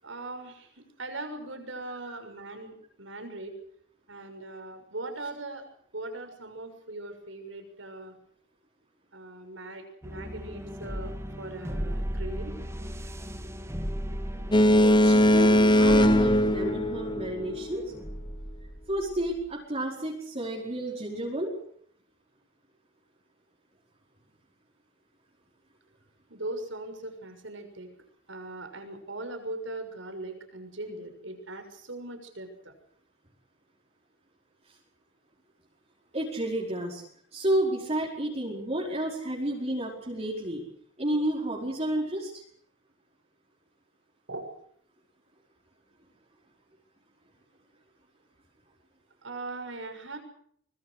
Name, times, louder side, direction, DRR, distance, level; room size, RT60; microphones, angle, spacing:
voice 1, 0.0-3.5 4.1-5.6 5.9-8.1 9.1-12.6 26.3-27.9 28.3-32.7 44.3-44.5 49.2-50.2, right 2 dB, 75° right, 7 dB, 6.4 m, -40 dB
sound 1, 10.0-19.4, equal, 15° right, 2.5 m, -37 dB
Boat Water vehicle, 14.5-17.6, equal, 25° left, 1.4 m, -20 dB
voice 2, 14.8-17.8 18.9-21.5 36.1-37.0 37.3-40.6 41.0-42.4, right 1 dB, 35° right, -2 dB, 5.1 m, -31 dB
24.5 x 21.5 x 6.5 m, 0.64 s
head